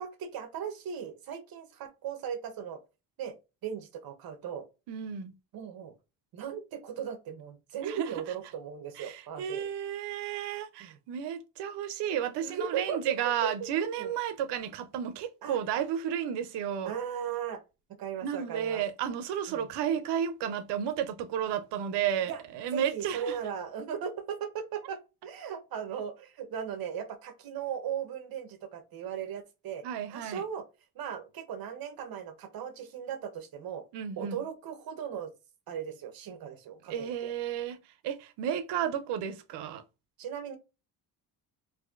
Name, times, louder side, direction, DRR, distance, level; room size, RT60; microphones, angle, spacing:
voice 1, 0.0-2.8 3.2-3.3 3.6-4.6 5.5-5.9 6.3-9.6 10.8-11.0 12.4-13.2 13.4-13.5 13.9-14.1 15.4-15.6 16.8-17.6 18.0-18.8 19.5-19.7 22.3-22.4 22.7-29.8 30.1-30.6 30.9-33.8 34.2-35.3 35.7-37.3 40.2-40.6, right 8 dB, 60° right, 0.9 m, -37 dB
voice 2, 4.9-5.3 7.8-8.1 8.9-16.9 18.2-23.4 29.8-30.4 33.9-34.4 36.9-39.8, right 9 dB, 90° right, 0.6 m, -33 dB
4.1 x 2.6 x 2.4 m
cardioid pair, 150°, 40 cm